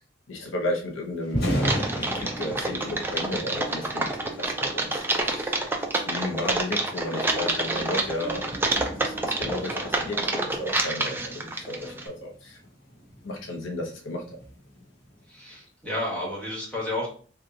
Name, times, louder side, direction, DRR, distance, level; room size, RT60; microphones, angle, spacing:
voice 1, 0.3-1.9 2.1-5.6 6.1-8.6 8.9-12.6 13.2-14.4, left 1 dB, 80° left, 0 dB, 0.7 m, -33 dB
Thunder, 1.2-15.3, equal, 55° left, 1.0 m, -37 dB
Typing, 1.6-12.1, right 2 dB, 10° right, 0.4 m, -28 dB
voice 2, 15.3-17.1, left 1 dB, 5° left, -5 dB, 1.2 m, -31 dB
2.8 x 2.2 x 3.7 m, 0.43 s
head